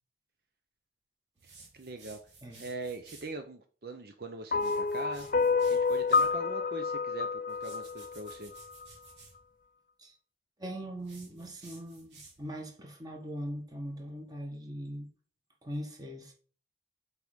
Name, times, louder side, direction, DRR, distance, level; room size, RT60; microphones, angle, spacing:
voice 1, 1.4-2.2 2.6-5.3 5.7-8.5, right 3 dB, 60° right, 0.7 m, -42 dB
sound 1, 1.4-3.4 4.5-6.4 7.5-9.4 11.0-12.6, right 3 dB, 85° right, 2.8 m, -55 dB
sound 2, 4.5-8.9, left 4 dB, 50° left, 0.4 m, -29 dB
voice 2, 10.6-15.1 15.6-16.3, equal, 20° right, 1.5 m, -41 dB
6.7 x 4.9 x 5.1 m
head